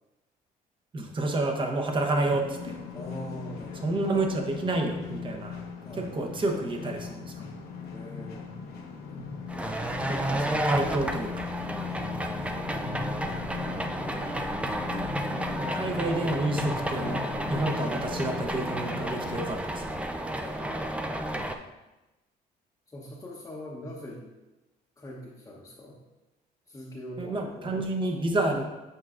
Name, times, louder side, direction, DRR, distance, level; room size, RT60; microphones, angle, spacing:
voice 1, 0.9-2.7 3.8-5.6 6.0-7.4 10.1-11.5 15.6-20.1 27.2-28.6, right 2 dB, 30° right, 3 dB, 0.9 m, -29 dB
sound 1, 2.2-19.5, left 5 dB, 70° left, 1.0 m, -38 dB
voice 2, 2.9-4.0 5.8-6.2 7.9-8.6 11.9-12.1 13.5-14.3 20.4-21.5 22.9-24.2 25.0-26.0 26.7-27.9, equal, 20° left, -5 dB, 0.9 m, -43 dB
sound 2, 9.5-21.5, right 1 dB, 5° right, 0.4 m, -32 dB
8.0 x 4.7 x 2.5 m, 1.1 s
cardioid pair, 110°, 17 cm